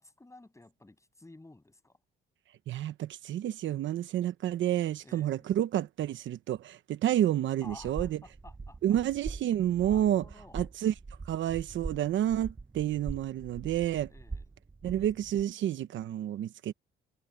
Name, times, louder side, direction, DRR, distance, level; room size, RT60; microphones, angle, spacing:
voice 1, 0.0-2.0 5.0-5.5 7.6-9.0 9.7-10.7 14.1-14.5, left 2 dB, 15° left, 7.3 m, -53 dB
voice 2, 2.7-8.2 8.8-10.2 10.5-10.9 11.2-14.1 14.8-16.7, right 11 dB, 75° right, 1.0 m, -29 dB
sound 1, 7.7-15.4, right 4 dB, 25° right, 7.9 m, -43 dB
open air
cardioid pair, 90°, 20 cm